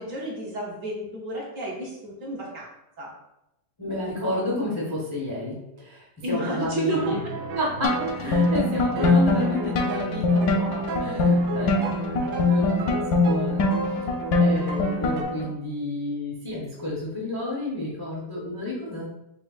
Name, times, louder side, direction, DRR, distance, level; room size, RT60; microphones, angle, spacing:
voice 1, 0.0-2.7 3.0-3.1 6.2-7.1, right 1 dB, 55° right, -3 dB, 1.1 m, -31 dB
voice 2, 3.8-7.2 7.6-14.0 14.3-19.1, left 1 dB, 35° left, -5 dB, 0.3 m, -31 dB
sound 1, 6.9-15.2, right 3 dB, 70° right, 0.8 m, -34 dB
sound 2, 7.8-15.5, left 2 dB, 70° left, 1.0 m, -23 dB
6.4 x 2.4 x 2.3 m, 0.87 s
omnidirectional pair, 2.0 m